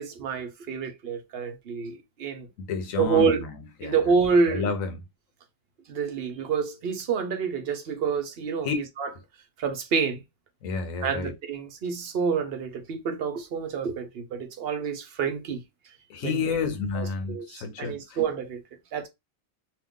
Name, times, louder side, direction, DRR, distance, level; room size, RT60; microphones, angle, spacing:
voice 1, 0.0-2.5 3.0-3.5 3.8-4.7 5.9-9.1 9.6-10.2 11.0-15.6 16.2-16.6 16.9-18.6 18.9-19.1, right 5 dB, 55° right, 0.9 m, -28 dB
voice 2, 2.6-3.5 3.8-4.0 4.5-5.0 8.6-8.8 10.6-11.3 16.1-18.0, left 5 dB, 75° left, 1.2 m, -30 dB
3.0 x 2.4 x 3.6 m
omnidirectional pair, 1.4 m